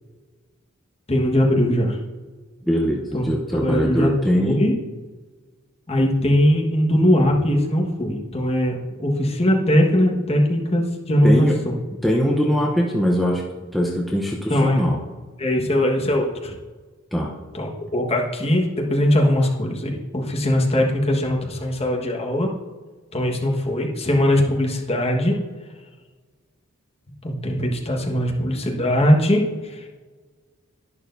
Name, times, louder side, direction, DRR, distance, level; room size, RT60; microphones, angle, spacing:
voice 1, 1.1-2.0 3.1-3.2 3.5-4.7 5.9-11.8 14.5-14.9 15.4-16.5 17.5-22.5 23.1-25.4 27.2-29.5 29.7-29.8, left 1 dB, 30° left, -1 dB, 1.5 m, -20 dB
voice 2, 2.7-4.6 11.2-11.6 12.0-13.4 13.7-15.0 17.1-17.3, equal, ahead, -3 dB, 0.8 m, -21 dB
11.0 x 11.0 x 2.7 m, 1.4 s
head